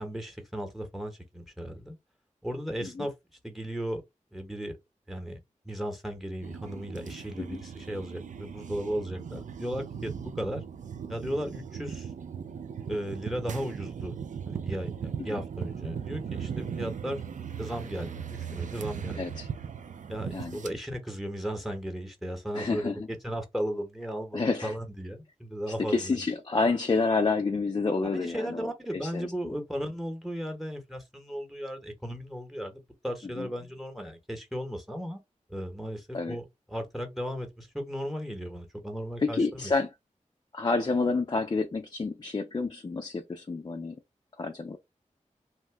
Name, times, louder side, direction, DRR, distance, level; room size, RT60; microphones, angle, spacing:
voice 1, 0.0-2.0 2.4-3.1 3.4-4.0 4.3-4.7 5.1-5.4 5.6-10.6 11.1-12.1 12.9-14.2 14.5-17.2 17.6-19.4 20.1-22.9 23.2-26.2 28.0-35.2 35.5-39.7, equal, ahead, 1.0 m, -36 dB
sound 1, 6.4-20.7, right 7 dB, 70° right, 0.4 m, -38 dB
voice 2, 19.2-19.5 20.3-20.6 22.5-23.1 24.3-24.7 25.9-29.3 33.4-33.5 36.1-36.4 39.2-39.9 40.5-44.0 44.4-44.8, left 3 dB, 35° left, 0.4 m, -29 dB
2.7 x 2.1 x 3.3 m
cardioid pair, 50°, 13 cm